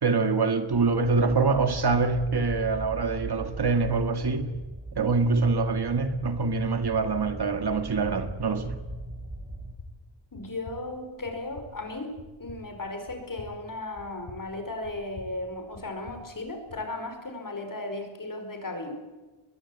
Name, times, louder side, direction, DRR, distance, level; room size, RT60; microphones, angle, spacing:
voice 1, 0.0-4.5 5.0-8.8, right 4 dB, 50° right, 1.9 m, -25 dB
sound 1, 0.7-9.7, right 1 dB, 20° right, 4.4 m, -40 dB
sound 2, 8.9-16.9, left 2 dB, 65° left, 7.4 m, -49 dB
voice 2, 10.3-19.0, left 2 dB, 40° left, 5.1 m, -36 dB
22.0 x 21.5 x 8.8 m
wide cardioid pair, 110°, 50 cm